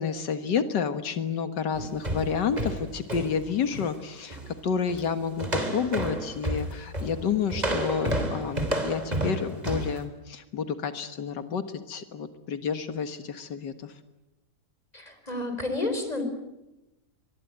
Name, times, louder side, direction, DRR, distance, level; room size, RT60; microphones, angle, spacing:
voice 1, 0.0-13.9, left 6 dB, 90° left, 9 dB, 2.1 m, -30 dB
sound 1, 1.7-4.0 4.3-4.5 4.9-5.1 5.4-10.0, right 1 dB, 25° right, 3.6 m, -31 dB
voice 2, 14.9-16.2, left 2 dB, 20° left, 7 dB, 4.7 m, -30 dB
24.0 x 22.5 x 9.5 m, 0.97 s
omnidirectional pair, 1.8 m